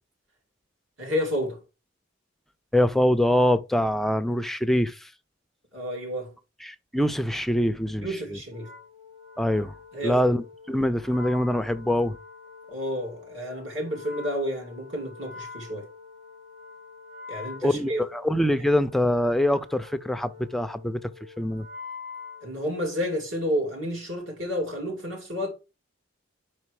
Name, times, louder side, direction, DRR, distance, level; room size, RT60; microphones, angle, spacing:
voice 1, 1.0-1.6 5.7-6.3 8.0-8.7 9.9-10.2 12.7-15.9 17.3-18.0 22.4-25.5, equal, 70° right, 2.8 m, -30 dB
voice 2, 2.7-5.1 6.6-8.4 9.4-9.7 10.0-12.2 17.6-21.0 21.4-21.7, left 1 dB, ahead, 0.4 m, -24 dB
Wind instrument woodwind instrument, 8.5-23.2, left 5 dB, 35° right, 1.5 m, -45 dB
5.2 x 4.3 x 4.7 m
head